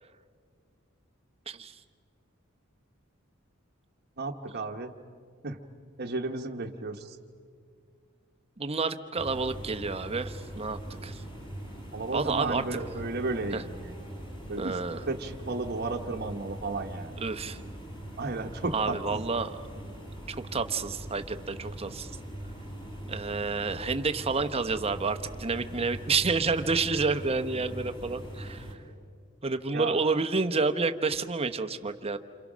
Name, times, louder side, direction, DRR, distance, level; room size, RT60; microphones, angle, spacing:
voice 1, 4.2-4.9 5.4-5.6 6.0-7.2 11.9-13.9 14.5-14.8 15.1-17.2 18.2-19.2 29.7-30.0, right 3 dB, 50° right, 3 dB, 1.2 m, -33 dB
voice 2, 8.6-11.2 12.1-12.6 13.5-13.6 14.6-15.0 17.2-17.6 18.7-19.6 20.3-22.1 23.1-28.7 29.4-32.2, right 4 dB, 30° right, 9 dB, 0.9 m, -29 dB
sound 1, 9.2-28.7, right 1 dB, 25° left, 4.0 m, -41 dB
28.5 x 26.5 x 6.2 m, 2.1 s
head